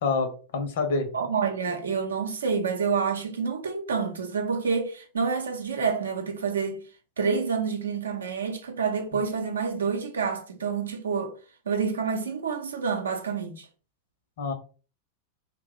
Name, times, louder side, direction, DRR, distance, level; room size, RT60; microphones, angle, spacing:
voice 1, 0.0-1.1 14.4-14.5, left 4 dB, 60° left, 0.6 m, -27 dB
voice 2, 1.1-6.8 7.2-11.4 11.7-13.7, right 5 dB, 70° right, 0.5 m, -28 dB
2.3 x 2.0 x 3.6 m
figure-of-eight pair, 90°, 0 cm